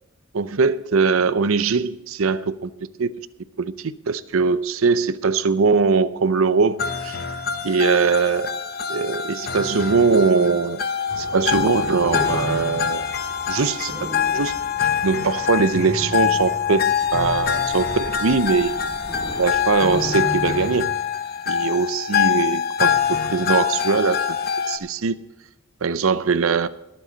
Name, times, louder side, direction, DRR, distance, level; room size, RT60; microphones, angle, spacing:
voice 1, 0.3-2.7 3.0-3.1 3.6-7.2 7.6-8.5 8.9-10.8 11.2-13.0 13.5-14.5 14.8-18.9 19.4-20.9 21.5-24.4 24.7-25.2 25.8-26.7, right 5 dB, 70° right, 0.6 m, -21 dB
sound 1, 6.8-24.8, left 7 dB, 50° left, 1.0 m, -24 dB
sound 2, 11.1-20.8, right 1 dB, 15° left, 2.1 m, -35 dB
21.5 x 7.6 x 4.0 m
head